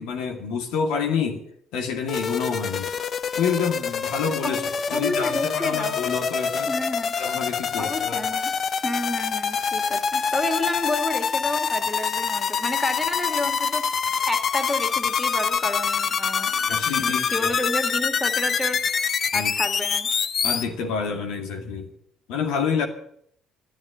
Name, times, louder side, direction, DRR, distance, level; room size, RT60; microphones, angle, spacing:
voice 1, 0.0-1.4 1.7-2.9 3.4-4.6 4.9-6.7 7.1-8.3 16.7-17.6 19.3-19.5 20.4-21.9 22.3-22.9, left 6 dB, 75° left, 4 dB, 2.2 m, -28 dB
sound 1, 2.1-20.6, left 6 dB, 50° left, 0.8 m, -25 dB
voice 2, 4.4-6.1 6.7-7.2 7.8-8.5 8.8-16.7 17.0-18.8 19.3-20.1, left 1 dB, 15° left, 8 dB, 2.8 m, -30 dB
12.5 x 11.0 x 10.0 m, 0.66 s
hypercardioid pair, 60°, 0 cm